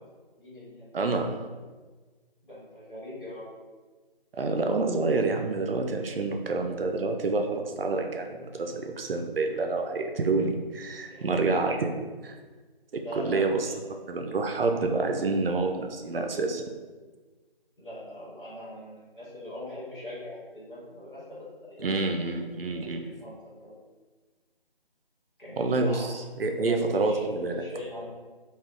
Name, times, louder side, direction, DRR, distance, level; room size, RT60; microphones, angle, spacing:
voice 1, 0.4-1.0 2.4-3.5 11.1-11.8 12.9-13.8 17.8-22.0 22.7-23.8 25.4-26.1 26.6-27.2 27.5-28.1, left 1 dB, 60° left, -8 dB, 1.4 m, -42 dB
voice 2, 0.9-1.4 4.3-11.9 12.2-12.3 12.9-13.7 14.1-16.6 21.8-23.0 25.6-27.6, right 3 dB, 70° right, 4 dB, 0.5 m, -28 dB
3.5 x 2.4 x 2.4 m, 1.4 s
figure-of-eight pair, 175°, 30 cm